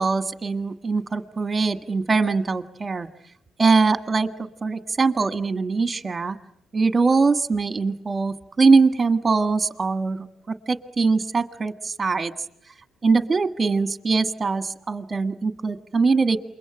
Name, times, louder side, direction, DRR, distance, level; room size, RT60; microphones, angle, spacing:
voice 1, 0.0-3.1 3.6-4.3 4.6-6.4 6.7-12.3 13.0-16.4, right 4 dB, 25° right, 10 dB, 1.7 m, -22 dB
28.0 x 23.0 x 9.0 m, 0.72 s
cardioid pair, 110°, 0 cm